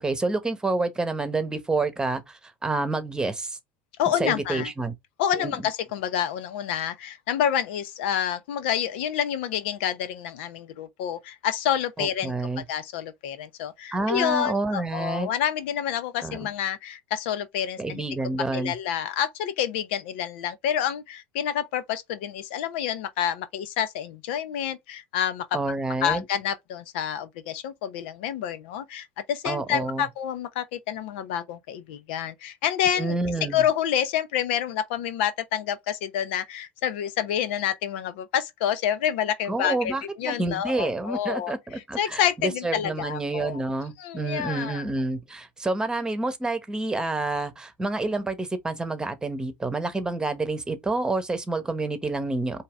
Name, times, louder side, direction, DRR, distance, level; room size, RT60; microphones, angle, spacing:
voice 1, 0.0-3.6 4.2-4.9 5.3-5.5 12.0-12.6 13.9-15.3 16.2-16.5 17.8-18.7 25.5-26.2 29.4-30.1 33.0-33.6 39.5-52.6, right 2 dB, 10° right, 1.1 m, -28 dB
voice 2, 4.0-4.7 5.2-12.3 12.7-18.0 18.5-25.6 26.0-33.2 33.5-39.9 40.2-43.6 44.0-44.8, left 9 dB, 75° left, 0.7 m, -28 dB
4.7 x 2.8 x 3.4 m
hypercardioid pair, 90°, 6 cm